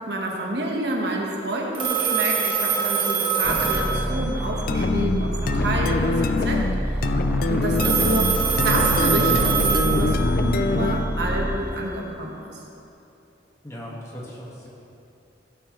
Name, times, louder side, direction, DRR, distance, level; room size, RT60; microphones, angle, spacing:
voice 1, 0.1-6.6 7.5-8.4 8.6-12.3, right 1 dB, 65° right, -1 dB, 1.4 m, -28 dB
Telephone, 1.7-4.6 7.7-10.6, right 6 dB, 30° right, 1.2 m, -24 dB
sound 1, 3.4-11.7, equal, 5° right, 0.4 m, -27 dB
sound 2, 4.7-11.2, left 3 dB, 50° left, 0.4 m, -24 dB
voice 2, 13.6-14.7, equal, 15° left, -4 dB, 1.7 m, -38 dB
16.0 x 8.0 x 3.2 m, 2.7 s
head